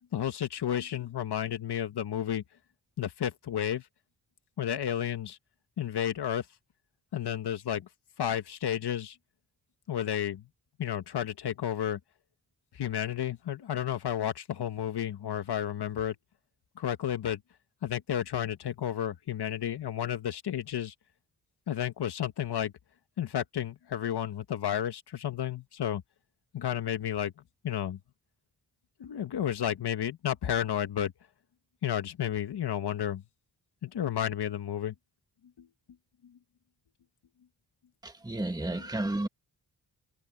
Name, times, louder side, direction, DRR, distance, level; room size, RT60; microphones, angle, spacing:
voice 1, 0.1-2.4 3.0-3.8 4.6-5.4 5.8-6.4 7.1-7.9 8.2-9.1 9.9-10.4 10.8-12.0 12.8-16.1 16.8-17.4 17.8-20.9 21.7-22.7 23.2-26.0 26.5-27.3 27.6-28.0 29.0-31.1 31.8-33.2 33.8-34.9 35.6-35.7, left 10 dB, 85° left, 1.6 m, -32 dB
voice 2, 38.0-39.3, right 1 dB, 10° right, 2.0 m, -32 dB
wide cardioid pair, 90°, 38 cm